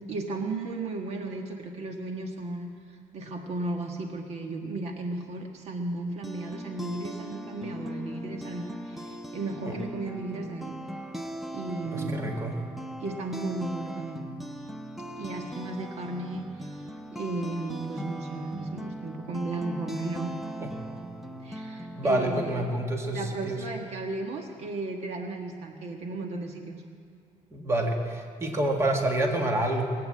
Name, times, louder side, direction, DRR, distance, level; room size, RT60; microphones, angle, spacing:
voice 1, 0.1-10.7 11.5-12.2 13.0-14.2 15.2-16.8 17.1-20.3 21.4-22.7 23.1-26.8, right 2 dB, 55° right, 3 dB, 1.5 m, -35 dB
sound 1, 6.0-22.9, equal, ahead, 0.8 m, -39 dB
voice 2, 11.8-12.6 20.6-20.7 22.0-23.6 27.5-29.9, right 1 dB, 20° right, 2 dB, 1.7 m, -28 dB
21.0 x 8.6 x 7.6 m, 2.4 s
cardioid pair, 125°, 13 cm